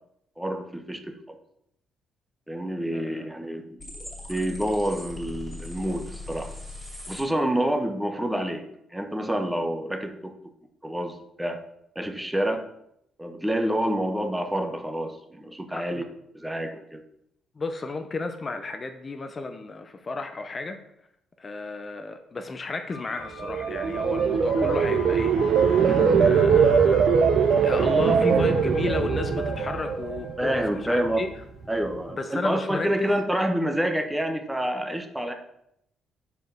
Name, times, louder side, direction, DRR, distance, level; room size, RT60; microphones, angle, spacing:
voice 1, 0.4-1.4 2.5-3.8 4.3-6.5 7.1-8.6 8.9-10.3 10.8-11.6 11.9-12.7 13.2-16.0 16.3-17.0 30.4-31.2 31.7-35.3, right 1 dB, 5° right, 5 dB, 0.9 m, -28 dB
voice 2, 2.9-3.3 15.7-16.0 17.6-20.8 21.4-25.6 25.8-27.0 27.6-31.3 32.1-33.1, left 3 dB, 35° left, 7 dB, 0.6 m, -33 dB
sound 1, 3.8-7.2, left 2 dB, 10° left, 2.6 m, -39 dB
sound 2, 22.9-32.6 32.9-33.0, left 6 dB, 55° left, 1.5 m, -43 dB
sound 3, 23.4-30.6 31.0-31.3, right 6 dB, 65° right, 0.7 m, -21 dB
5.1 x 4.7 x 6.0 m, 0.76 s
cardioid pair, 90°, 0 cm